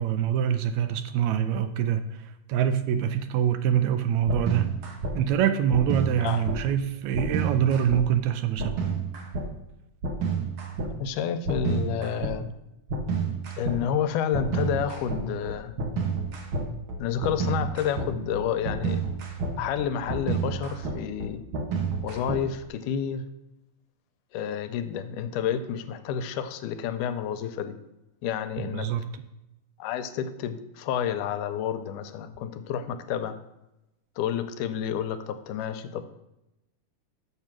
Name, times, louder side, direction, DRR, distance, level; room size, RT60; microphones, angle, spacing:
voice 1, 0.0-2.2 2.5-4.7 5.1-8.9 28.6-29.0, right 9 dB, 80° right, 1.6 m, -25 dB
sound 1, 4.3-5.1 5.7-6.6 7.1-8.0 8.6-9.5 10.0-10.9 11.5-12.4 12.9-13.8 14.3-22.7, right 4 dB, 60° right, 1.4 m, -30 dB
voice 2, 11.0-12.5 13.6-15.7 17.0-19.0 19.6-21.4 22.0-23.3 24.3-27.8 28.2-28.9 29.8-33.4 34.2-36.0, left 8 dB, 90° left, 2.1 m, -30 dB
6.9 x 6.6 x 6.0 m
omnidirectional pair, 3.6 m